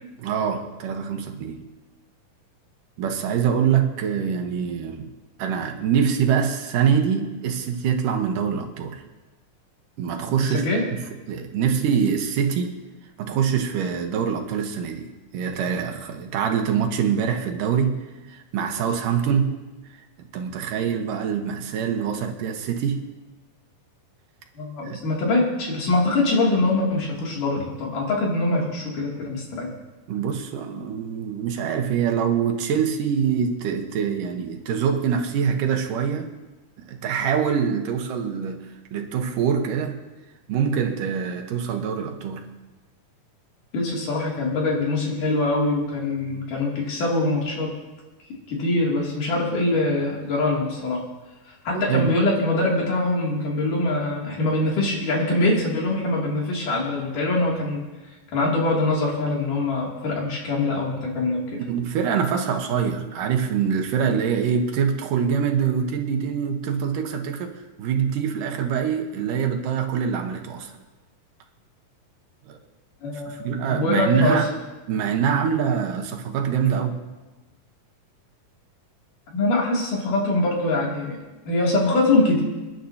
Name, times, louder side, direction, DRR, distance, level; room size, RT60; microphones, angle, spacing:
voice 1, 0.2-1.7 3.0-5.1 5.4-9.0 10.0-12.7 13.2-18.0 18.3-19.6 20.2-23.1 24.8-25.0 30.1-36.3 36.8-40.0 40.5-42.5 51.7-52.1 61.7-70.7 72.5-72.6 73.3-74.5 74.9-77.0, right 7 dB, 85° right, 4 dB, 2.8 m, -24 dB
voice 2, 24.6-29.7 43.7-47.7 48.5-51.0 51.6-57.8 58.3-61.6 73.0-73.4 73.7-74.4 79.3-81.2 81.5-82.4, left 2 dB, 75° left, -3 dB, 4.4 m, -23 dB
28.5 x 10.5 x 2.9 m, 1.1 s
omnidirectional pair, 3.7 m